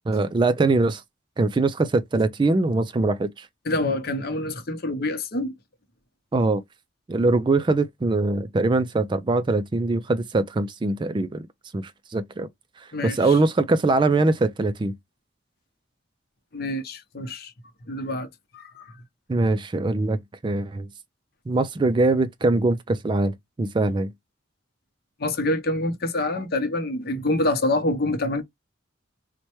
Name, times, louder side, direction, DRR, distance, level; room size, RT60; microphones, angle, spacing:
voice 1, 0.1-1.0 1.4-3.5 6.3-6.6 7.1-11.5 11.7-12.5 13.0-14.9 19.3-20.9 21.5-24.1, right 2 dB, 25° right, 0.3 m, -22 dB
voice 2, 3.6-5.5 12.9-13.4 16.5-17.5 17.9-18.3 18.5-18.9 25.2-28.4, left 2 dB, 50° left, 0.8 m, -26 dB
4.2 x 2.2 x 2.9 m
head